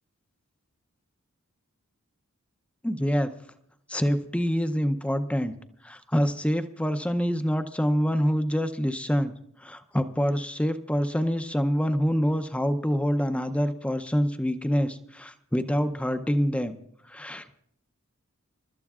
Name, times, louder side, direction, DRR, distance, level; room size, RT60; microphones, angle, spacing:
voice 1, 2.8-3.3 3.9-5.5 5.8-9.3 9.6-16.8 17.1-17.5, equal, 5° left, 10 dB, 0.5 m, -26 dB
27.5 x 13.0 x 2.4 m, 0.74 s
head